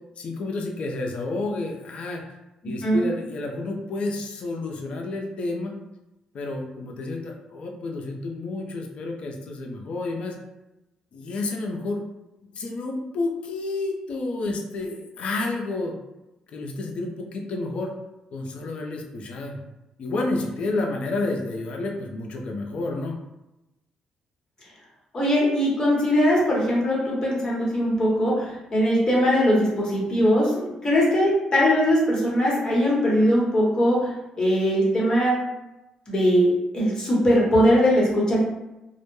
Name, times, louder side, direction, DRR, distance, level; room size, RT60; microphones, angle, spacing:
voice 1, 0.2-2.2 2.6-5.7 6.3-10.4 11.1-12.0 12.5-16.0 16.5-17.9 18.3-19.6 20.0-23.2, left 2 dB, 60° left, 1 dB, 0.5 m, -30 dB
voice 2, 25.1-34.1 34.4-35.4 36.1-38.5, equal, 35° left, -4 dB, 0.9 m, -21 dB
2.1 x 2.0 x 3.0 m, 0.97 s
cardioid pair, 95°, 2 cm